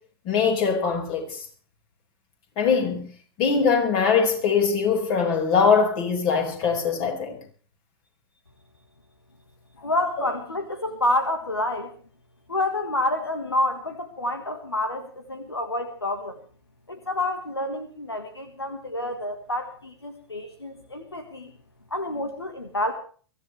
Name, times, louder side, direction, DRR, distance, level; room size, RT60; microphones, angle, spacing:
voice 1, 0.3-1.4 2.6-3.1 3.4-7.4, left 5 dB, 40° left, 5.6 m, -22 dB
voice 2, 9.8-11.9 12.5-16.4 16.9-21.5 21.9-22.9, left 1 dB, 90° left, 1.7 m, -28 dB
23.0 x 15.0 x 3.4 m
figure-of-eight pair, 100°, 13 cm